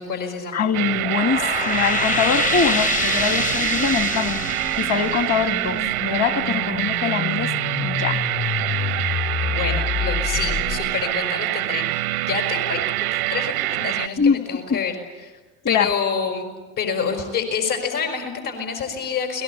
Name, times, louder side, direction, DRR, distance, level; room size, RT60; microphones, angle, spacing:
voice 1, 0.0-0.6 9.4-12.8 13.1-15.0 15.2-15.3 15.7-16.5 16.8-19.4, left 6 dB, 70° left, 5.7 m, -27 dB
voice 2, 0.5-4.5 4.8-7.5 7.8-8.2 14.2-14.8 15.6-15.9, left 6 dB, 35° left, 1.6 m, -23 dB
sound 1, 0.7-14.1, right 18 dB, 90° right, 0.7 m, -25 dB
sound 2, 0.9-6.2, left 3 dB, 20° left, 0.8 m, -26 dB
sound 3, 1.1-11.1, left 8 dB, 55° left, 4.5 m, -31 dB
29.5 x 20.5 x 8.5 m
hypercardioid pair, 75°, 43 cm